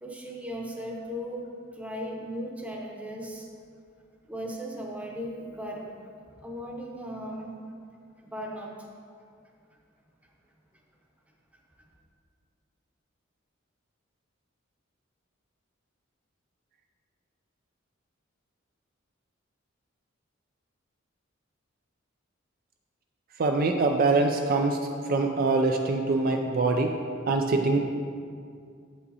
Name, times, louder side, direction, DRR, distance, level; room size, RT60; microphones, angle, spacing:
voice 1, 0.0-3.5 4.3-5.9 6.4-7.6 8.2-8.8 11.8-11.9, equal, 5° right, -1 dB, 0.8 m, -37 dB
voice 2, 23.4-24.8 25.1-26.9 27.3-27.9, right 3 dB, 45° right, 3 dB, 0.4 m, -24 dB
7.9 x 5.5 x 4.0 m, 2.3 s
head